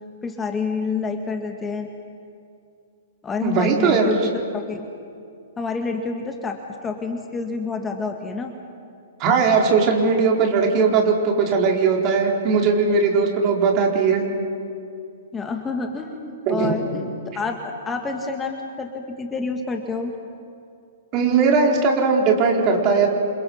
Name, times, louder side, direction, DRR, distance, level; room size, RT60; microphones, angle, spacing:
voice 1, 0.2-1.9 3.2-4.8 5.6-8.5 15.3-20.1, left 4 dB, 15° left, 4 dB, 1.9 m, -28 dB
voice 2, 3.4-4.1 9.2-14.2 16.5-16.8 21.1-23.1, right 5 dB, 35° right, 0 dB, 4.4 m, -19 dB
29.0 x 27.0 x 5.6 m, 2.4 s
figure-of-eight pair, 115°, 0 cm